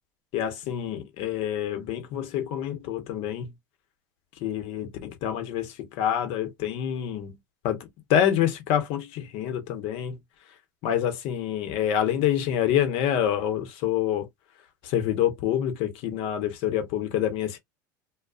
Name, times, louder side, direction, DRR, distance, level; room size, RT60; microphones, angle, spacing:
voice 1, 0.3-3.5 4.4-7.3 7.6-7.8 8.1-10.2 10.8-14.3 14.9-17.6, left 10 dB, 60° left, 1.0 m, -27 dB
2.4 x 2.3 x 2.5 m
hypercardioid pair, 80°, 11 cm